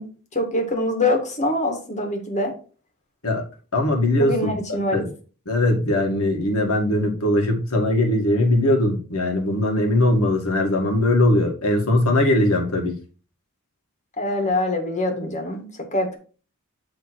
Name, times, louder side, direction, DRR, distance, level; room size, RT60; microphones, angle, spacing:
voice 1, 0.0-2.5 4.2-5.0 14.2-16.2, left 1 dB, 35° left, 3 dB, 1.9 m, -24 dB
voice 2, 3.7-5.1 5.5-12.9, left 1 dB, 75° left, 1 dB, 2.0 m, -20 dB
9.4 x 3.6 x 4.6 m, 0.38 s
head